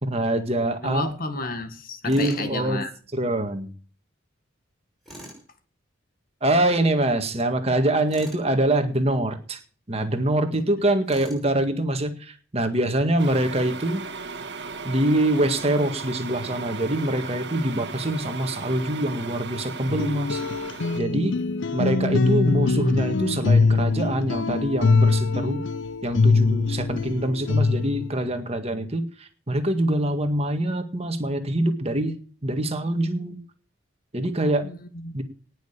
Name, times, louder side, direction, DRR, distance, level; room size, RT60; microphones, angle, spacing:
voice 1, 0.0-1.1 2.0-2.8 3.1-3.7 6.4-9.6 9.9-14.0 14.8-20.4 20.9-21.3 21.7-25.6 26.0-33.4 34.1-34.7 35.1-35.2, right 1 dB, 30° right, 7 dB, 1.8 m, -24 dB
voice 2, 0.8-2.9 10.5-10.6 21.1-21.6 22.2-22.3 34.6-35.2, left 2 dB, 45° left, 9 dB, 1.7 m, -32 dB
Tools, 2.1-2.5 5.0-5.4 8.1-8.5 11.1-11.5, right 1 dB, ahead, 6.2 m, -42 dB
sound 1, 13.2-21.0, right 4 dB, 55° right, 1.8 m, -36 dB
sound 2, 19.9-28.1, left 3 dB, 65° left, 0.7 m, -22 dB
19.0 x 6.5 x 6.7 m, 0.41 s
head